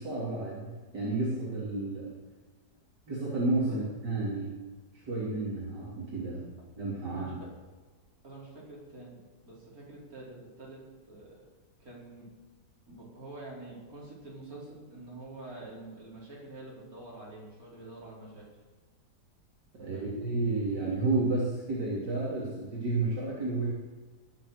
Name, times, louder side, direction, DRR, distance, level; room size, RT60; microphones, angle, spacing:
voice 1, 0.0-2.1 3.1-4.5 5.1-6.4 6.8-7.3 19.7-23.7, right 2 dB, 75° right, -6 dB, 3.8 m, -31 dB
voice 2, 7.1-7.5 8.2-9.2 9.4-11.5 11.8-12.3 12.9-18.5 19.8-20.2, right 2 dB, 55° right, -4 dB, 5.2 m, -47 dB
20.0 x 8.0 x 6.6 m, 1.3 s
omnidirectional pair, 1.9 m